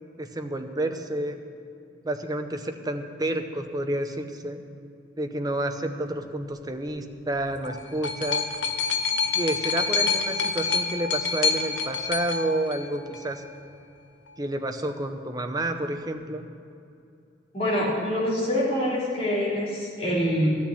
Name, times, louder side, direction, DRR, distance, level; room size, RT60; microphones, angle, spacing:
voice 1, 0.2-1.4 2.0-4.6 5.2-8.5 9.3-13.5 14.4-16.4, right 1 dB, 20° right, 6 dB, 0.8 m, -30 dB
sound 1, 7.4-13.4 14.3-14.4, left 5 dB, 85° left, 0.9 m, -27 dB
voice 2, 17.5-20.5, equal, 35° left, -6 dB, 3.4 m, -25 dB
13.5 x 6.5 x 9.9 m, 2.5 s
head